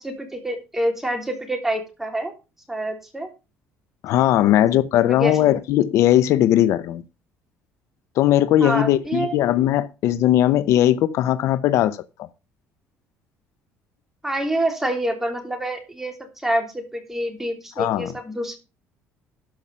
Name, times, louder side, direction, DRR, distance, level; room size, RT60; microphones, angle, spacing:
voice 1, 0.0-2.3 2.7-3.3 4.4-4.7 5.1-5.4 8.6-9.3 14.2-18.6, right 1 dB, 5° right, 3.3 m, -27 dB
voice 2, 4.0-7.0 8.2-12.0 17.8-18.1, left 12 dB, 65° left, 0.7 m, -18 dB
12.5 x 5.6 x 5.6 m
cardioid pair, 115°, 5 cm